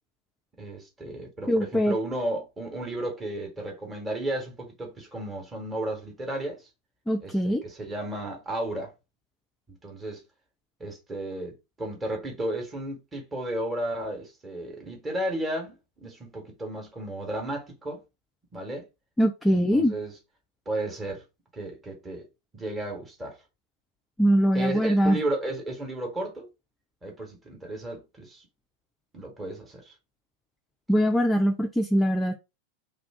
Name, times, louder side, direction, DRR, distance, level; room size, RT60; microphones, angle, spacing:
voice 1, 0.6-6.7 7.2-8.9 9.7-10.2 10.8-18.0 18.5-18.8 19.5-20.2 20.7-21.2 21.5-22.3 22.5-23.4 24.5-26.5 27.0-28.5 29.1-29.9, right 1 dB, 15° right, 1.1 m, -33 dB
voice 2, 1.5-1.9 7.1-7.6 19.2-19.9 24.2-25.2 30.9-32.3, equal, 5° left, 0.3 m, -22 dB
2.5 x 2.4 x 3.5 m
figure-of-eight pair, 90°, 0 cm